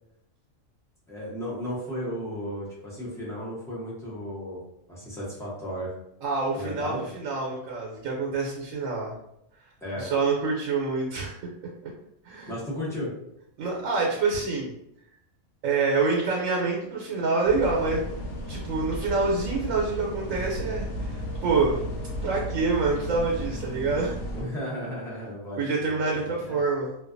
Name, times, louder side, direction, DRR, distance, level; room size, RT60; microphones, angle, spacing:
voice 1, 1.1-4.6 4.9-5.9 6.5-7.1 9.8-10.1 12.5-13.1 24.3-26.6, equal, 5° left, -8 dB, 0.6 m, -34 dB
voice 2, 6.2-9.1 10.0-11.3 12.3-12.5 13.6-14.7 15.6-18.0 18.5-21.8 22.2-24.1 25.6-26.9, right 4 dB, 80° right, -1 dB, 1.0 m, -26 dB
sound 1, 17.4-24.4, equal, 85° left, 1.1 m, -34 dB
2.5 x 2.2 x 2.4 m, 0.79 s
omnidirectional pair, 1.3 m